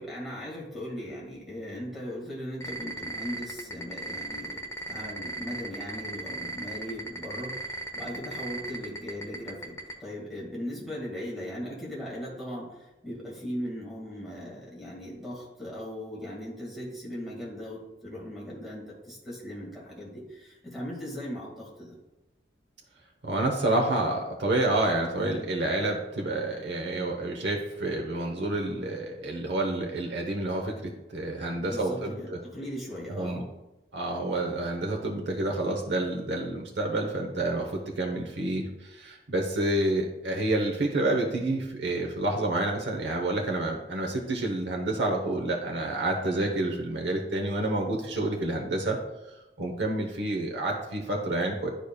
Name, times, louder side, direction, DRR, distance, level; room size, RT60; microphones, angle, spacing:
voice 1, 0.0-22.0 31.6-33.4, equal, ahead, -5 dB, 1.7 m, -38 dB
sound 1, 2.6-9.9, right 1 dB, 15° left, 0.6 m, -35 dB
voice 2, 23.2-32.4 33.1-33.4 33.9-49.0 49.6-51.7, right 2 dB, 90° right, 0 dB, 0.8 m, -29 dB
10.0 x 5.1 x 2.2 m, 1.0 s
head